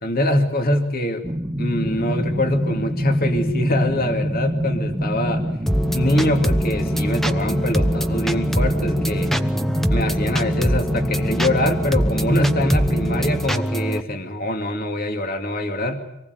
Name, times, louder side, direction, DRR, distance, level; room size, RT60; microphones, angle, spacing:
voice 1, 0.0-1.2 1.6-5.5 5.9-9.3 9.9-16.0, left 1 dB, 45° left, 5 dB, 2.4 m, -23 dB
sound 1, 1.2-13.4, equal, 15° right, 1.4 m, -25 dB
sound 2, 5.7-14.0, equal, ahead, 1.0 m, -24 dB
25.5 x 19.0 x 8.1 m, 0.86 s
head